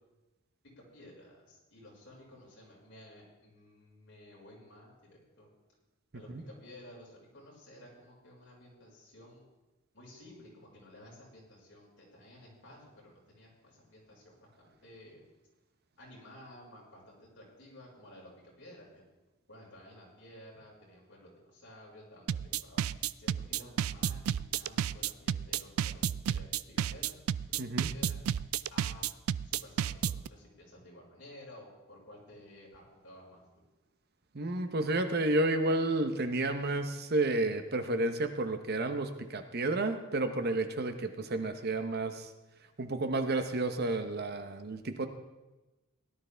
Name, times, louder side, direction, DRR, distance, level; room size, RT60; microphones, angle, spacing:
voice 1, 0.8-5.5 6.1-9.4 9.9-15.2 16.0-18.3 18.6-19.0 19.5-22.8 23.2-26.0 26.3-27.1 27.5-28.2 28.7-29.1 29.4-33.6, left 1 dB, 60° left, -4 dB, 5.0 m, -54 dB
sound 1, 22.3-30.3, right 9 dB, 85° right, 0.3 m, -31 dB
voice 2, 27.6-27.9 34.3-42.3 42.8-45.1, right 2 dB, 50° right, 8 dB, 0.9 m, -31 dB
17.5 x 12.0 x 3.4 m, 1.1 s
head